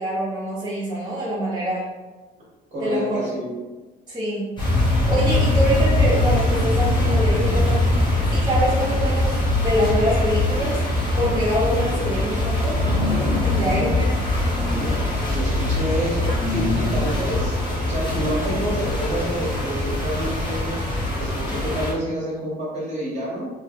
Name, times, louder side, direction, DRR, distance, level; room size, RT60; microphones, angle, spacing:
voice 1, 0.0-1.9 2.8-3.3 4.1-4.5 5.1-7.8 8.3-10.8 11.2-12.8 13.4-14.2, equal, 25° right, -10 dB, 0.9 m, -25 dB
voice 2, 2.7-3.5 5.7-5.8 15.2-20.8 21.2-23.5, equal, 45° right, -6 dB, 1.1 m, -28 dB
sound 1, 4.6-21.9, left 1 dB, 25° left, 1.0 m, -22 dB
3.0 x 2.5 x 2.8 m, 1.3 s
cardioid pair, 110°, 17 cm